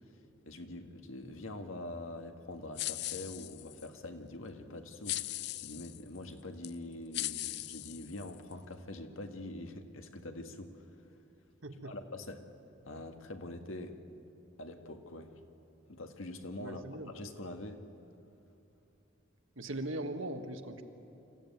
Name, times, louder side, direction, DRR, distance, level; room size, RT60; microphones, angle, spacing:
voice 1, 0.5-10.9 11.8-12.4 12.9-14.0 14.6-15.4 15.9-16.8 17.1-17.8, left 1 dB, 90° left, 6 dB, 1.7 m, -44 dB
sound 1, 2.8-3.9 5.0-6.0 6.6-6.7 7.1-8.5, left 16 dB, 55° left, 0.4 m, -39 dB
voice 2, 11.6-11.9 16.6-17.1 19.5-20.8, right 1 dB, 85° right, 6 dB, 1.6 m, -40 dB
26.0 x 15.0 x 9.4 m, 3.0 s
head